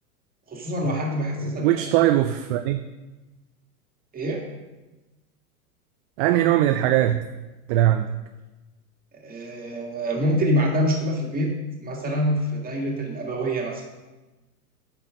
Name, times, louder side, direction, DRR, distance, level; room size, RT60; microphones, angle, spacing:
voice 1, 0.5-1.8 4.1-4.4 9.2-11.5 11.8-13.8, equal, 20° right, 0 dB, 1.9 m, -25 dB
voice 2, 1.4-2.8 6.2-7.2 7.7-8.1, right 13 dB, 40° right, 8 dB, 0.4 m, -20 dB
8.9 x 6.1 x 4.9 m, 1.1 s
hypercardioid pair, 110°, 45 cm